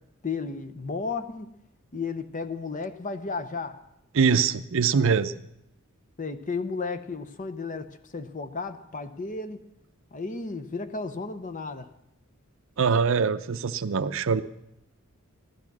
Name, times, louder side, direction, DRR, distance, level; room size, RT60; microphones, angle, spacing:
voice 1, 0.2-1.5 1.9-3.8 6.2-9.6 10.1-11.9, left 4 dB, 40° left, 11 dB, 0.8 m, -33 dB
voice 2, 4.1-5.3 12.8-14.4, right 5 dB, 65° right, 13 dB, 0.6 m, -23 dB
15.5 x 12.0 x 6.0 m, 0.83 s
head